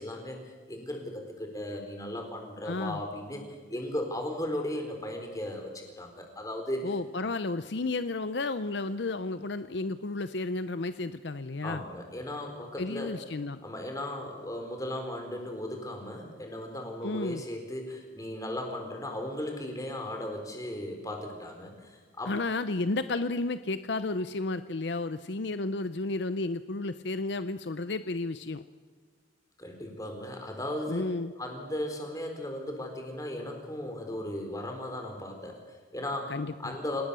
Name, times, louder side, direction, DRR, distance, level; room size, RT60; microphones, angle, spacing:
voice 1, 0.0-3.4 3.7-6.9 11.6-13.2 13.6-22.4 29.6-31.0 31.4-36.3 36.6-37.0, left 1 dB, 20° left, 3 dB, 4.1 m, -36 dB
voice 2, 2.6-3.0 6.8-11.8 12.8-13.6 17.0-17.4 22.3-28.6 30.9-31.3 36.3-36.8, left 2 dB, 65° left, 12 dB, 0.7 m, -32 dB
28.5 x 18.5 x 6.9 m, 1.5 s
head